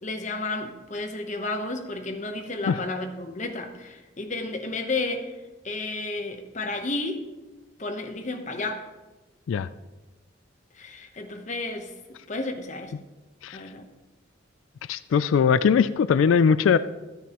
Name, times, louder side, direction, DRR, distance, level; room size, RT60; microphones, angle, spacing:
voice 1, 0.0-5.3 5.6-7.3 7.8-8.8 10.7-11.9 12.3-12.9 13.5-13.9, left 2 dB, 40° left, 5 dB, 0.9 m, -32 dB
voice 2, 14.9-16.8, left 6 dB, 85° left, 15 dB, 0.3 m, -20 dB
13.0 x 9.2 x 3.0 m, 1.1 s
head